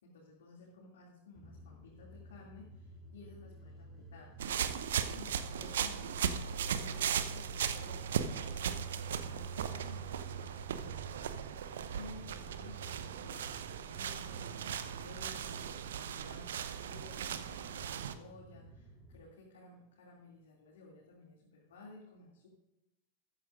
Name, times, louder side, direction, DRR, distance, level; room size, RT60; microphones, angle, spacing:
voice 1, 0.0-4.4 5.1-11.6 11.9-22.5, left 3 dB, 60° left, -3 dB, 2.5 m, -55 dB
sound 1, 1.3-19.2, right 3 dB, 15° right, 3.4 m, -49 dB
sound 2, 4.4-18.1, right 8 dB, 60° right, 0.7 m, -38 dB
14.5 x 13.0 x 2.5 m, 0.93 s
figure-of-eight pair, 90°, 0 cm